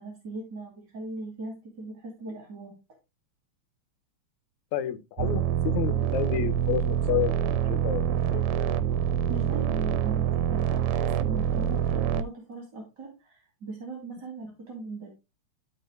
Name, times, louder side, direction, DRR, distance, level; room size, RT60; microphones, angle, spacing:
voice 1, 0.0-2.8 9.3-15.1, right 3 dB, 35° right, 2.9 m, -39 dB
voice 2, 4.7-8.5, left 11 dB, 80° left, 2.2 m, -30 dB
sound 1, 5.2-12.2, right 9 dB, 80° right, 2.0 m, -26 dB
13.0 x 4.9 x 3.2 m
omnidirectional pair, 3.4 m